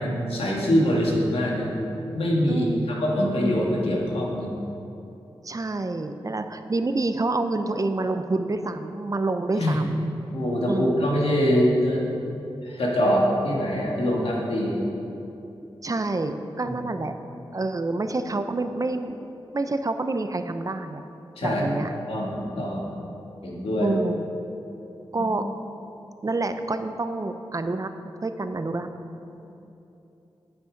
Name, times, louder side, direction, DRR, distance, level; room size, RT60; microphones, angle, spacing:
voice 1, 0.0-1.8 2.1-4.6 9.5-9.7 10.3-12.1 12.6-14.8 21.4-21.6 22.1-22.9 23.4-24.0 25.2-25.3, equal, 85° left, -3 dB, 1.8 m, -24 dB
voice 2, 2.5-2.8 5.4-10.1 10.7-11.1 15.8-17.1 17.5-19.1 19.5-21.0 21.4-21.9 23.8-24.3 25.1-25.5 26.2-27.9 28.2-28.9, right 2 dB, 35° right, 8 dB, 0.7 m, -27 dB
8.9 x 8.5 x 5.2 m, 2.9 s
cardioid pair, 50°, 10 cm